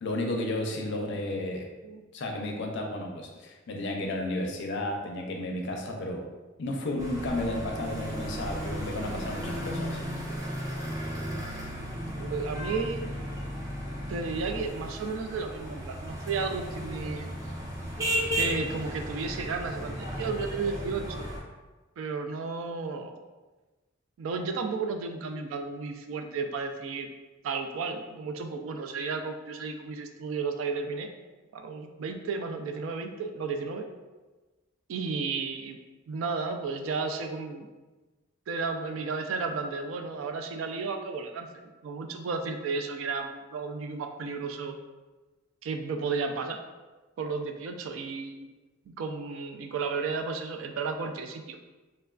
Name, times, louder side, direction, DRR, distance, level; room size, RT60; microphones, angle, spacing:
voice 1, 0.0-1.7 2.1-6.2 6.6-10.0, left 1 dB, 60° left, 2 dB, 0.4 m, -32 dB
sound 1, 7.0-21.4, equal, 15° right, 0.5 m, -35 dB
voice 2, 12.1-13.1 14.1-17.3 18.4-21.3 22.0-23.1 24.2-27.1 27.4-31.1 31.5-33.9 34.9-35.8 36.1-37.7 38.5-41.5 41.8-44.8 45.6-46.6 47.2-48.5 48.9-51.6, right 4 dB, 70° right, 5 dB, 0.3 m, -33 dB
3.2 x 2.2 x 2.3 m, 1.2 s
head